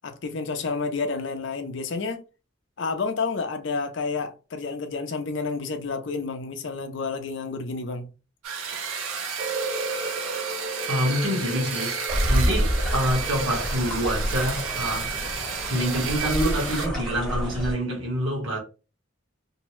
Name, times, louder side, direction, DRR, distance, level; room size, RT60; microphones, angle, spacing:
voice 1, 0.0-2.2 2.8-8.1, left 4 dB, 60° left, 0.5 m, -30 dB
sound 1, 8.4-16.9, right 6 dB, 90° right, 0.8 m, -32 dB
sound 2, 9.4-15.2, right 2 dB, 35° right, 0.5 m, -36 dB
voice 2, 10.9-18.6, equal, 70° right, 1.2 m, -27 dB
sound 3, 12.1-17.7, equal, 5° left, 0.9 m, -28 dB
2.6 x 2.0 x 3.0 m
head